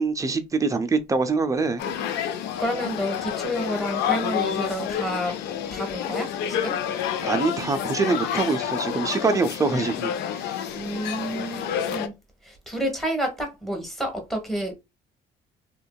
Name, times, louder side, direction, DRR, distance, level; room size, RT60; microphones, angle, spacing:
voice 1, 0.0-1.8 7.2-10.1, right 4 dB, 20° right, 0.4 m, -24 dB
sound 1, 1.8-12.1, left 9 dB, 80° left, 0.5 m, -29 dB
voice 2, 2.6-5.4 5.7-6.8 10.7-12.1 12.4-14.7, equal, ahead, 1.1 m, -29 dB
2.9 x 2.6 x 2.2 m
cardioid pair, 110°, 17 cm